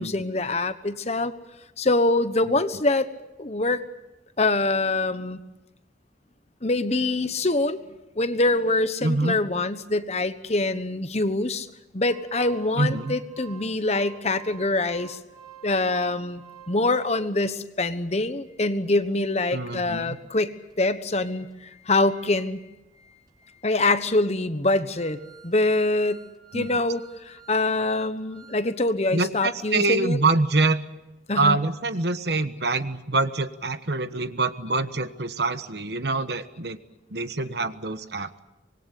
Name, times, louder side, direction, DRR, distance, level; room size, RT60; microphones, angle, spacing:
voice 1, 0.0-1.3 1.8-3.1 3.4-3.8 4.4-5.4 6.6-7.8 8.2-11.7 11.9-15.2 15.6-16.4 16.7-21.5 21.9-22.6 23.6-26.2 26.5-30.2 31.3-31.6, left 2 dB, 35° left, 11 dB, 1.2 m, -24 dB
voice 2, 9.0-9.4 12.8-13.2 19.5-20.2 26.5-26.7 29.1-30.8 31.4-36.8 37.1-38.4, right 3 dB, 65° right, 11 dB, 1.2 m, -25 dB
Organ, 12.0-17.6 18.1-18.2 18.5-18.6 19.1-28.7 29.0-29.1, right 7 dB, 25° right, 5.5 m, -51 dB
25.0 x 20.5 x 8.4 m, 0.98 s
head